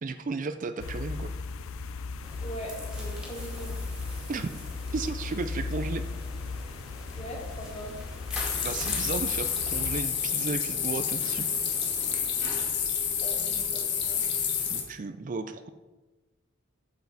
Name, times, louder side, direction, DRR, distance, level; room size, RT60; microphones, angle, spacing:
voice 1, 0.0-1.3 4.3-4.5 4.9-6.0 8.6-11.5 14.7-15.7, right 3 dB, 40° right, 10 dB, 0.4 m, -34 dB
sound 1, 0.8-10.0, left 4 dB, 85° left, 0.5 m, -37 dB
sound 2, 2.2-12.6, equal, 5° right, 2.1 m, -46 dB
voice 2, 2.4-3.8 7.1-8.0 13.2-14.3, right 1 dB, 35° left, -3 dB, 2.5 m, -41 dB
sound 3, 8.3-14.8, left 7 dB, 60° left, 1.5 m, -29 dB
8.6 x 7.0 x 4.0 m, 1.2 s
head